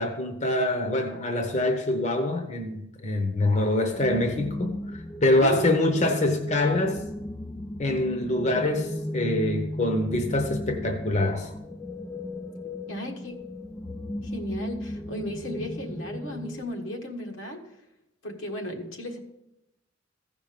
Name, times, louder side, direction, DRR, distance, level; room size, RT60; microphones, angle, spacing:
voice 1, 0.0-7.0 7.8-11.5, left 1 dB, 35° left, 5 dB, 0.9 m, -25 dB
sound 1, 3.9-16.6, left 1 dB, 10° left, 0.3 m, -36 dB
voice 2, 5.3-5.7 6.1-6.2 12.9-13.3 14.2-17.6 18.2-19.2, equal, 80° left, 2 dB, 1.5 m, -35 dB
15.0 x 5.3 x 5.1 m, 0.89 s
head